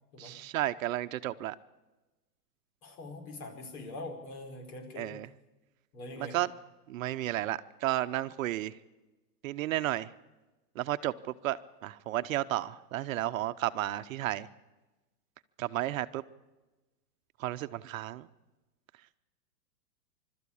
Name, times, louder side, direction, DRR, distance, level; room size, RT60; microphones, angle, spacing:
voice 1, 0.2-1.6 5.0-5.3 6.2-6.5 6.9-8.7 9.4-10.1 10.8-11.1 11.4-11.6 11.8-14.5 15.6-16.2 17.4-18.3, right 14 dB, 55° right, 0.8 m, -32 dB
voice 2, 2.8-5.1 5.9-6.4, left 2 dB, 60° left, 4.9 m, -43 dB
26.0 x 13.0 x 8.6 m
hypercardioid pair, 145°, 49 cm